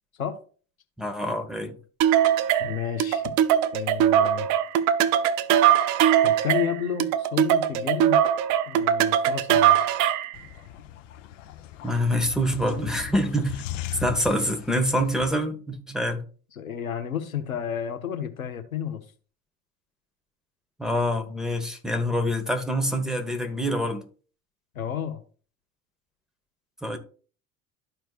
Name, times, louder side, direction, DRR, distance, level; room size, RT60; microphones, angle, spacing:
voice 1, 1.0-1.8 11.8-13.6 14.0-16.2 20.8-24.0 26.8-27.0, equal, ahead, 1.3 m, -26 dB
sound 1, 2.0-10.4, right 10 dB, 45° right, 0.5 m, -21 dB
voice 2, 2.6-3.3 3.7-4.5 6.2-8.2 8.7-9.9 16.5-19.0 24.7-25.2, left 9 dB, 85° left, 1.0 m, -31 dB
sound 2, 10.3-15.4, left 11 dB, 60° left, 0.9 m, -38 dB
13.0 x 4.5 x 2.5 m
figure-of-eight pair, 75°, 40 cm